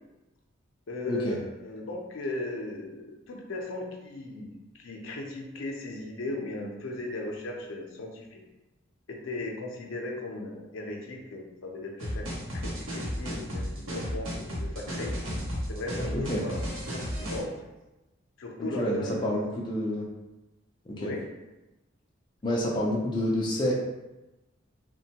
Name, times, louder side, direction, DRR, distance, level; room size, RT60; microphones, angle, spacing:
voice 1, 0.9-4.5 4.8-8.4 9.1-12.3 12.5-15.1 15.7-17.5 18.4-19.4 21.0-21.3, left 2 dB, 75° left, 0 dB, 0.5 m, -37 dB
sound 1, 12.0-17.4, equal, 80° right, 0.7 m, -34 dB
voice 2, 18.6-20.1 20.9-21.1 22.4-23.7, equal, 20° left, -4 dB, 0.3 m, -28 dB
3.0 x 2.1 x 2.8 m, 1.0 s
head